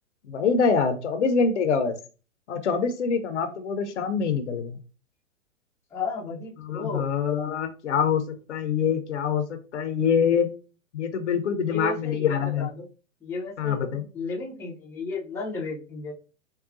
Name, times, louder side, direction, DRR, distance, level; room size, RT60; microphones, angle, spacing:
voice 1, 0.3-1.9 2.5-4.8 6.7-8.2 8.5-10.5 10.9-12.7 13.6-14.0, left 6 dB, 60° left, 8 dB, 0.8 m, -25 dB
voice 2, 5.9-7.1 11.7-12.9 13.2-13.8 14.1-16.1, left 3 dB, 5° left, -4 dB, 0.6 m, -33 dB
4.6 x 2.3 x 2.5 m, 0.34 s
figure-of-eight pair, 115°, 39 cm